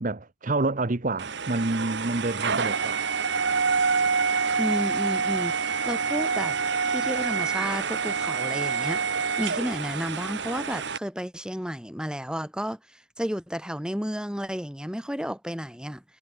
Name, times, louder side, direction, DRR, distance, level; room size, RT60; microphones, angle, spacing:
voice 1, 0.0-3.1, right 2 dB, 40° right, 0.9 m, -28 dB
sound 1, 1.2-11.0, right 5 dB, 55° right, 1.2 m, -27 dB
voice 2, 4.6-6.6 6.9-16.0, equal, 5° right, 4.0 m, -32 dB
head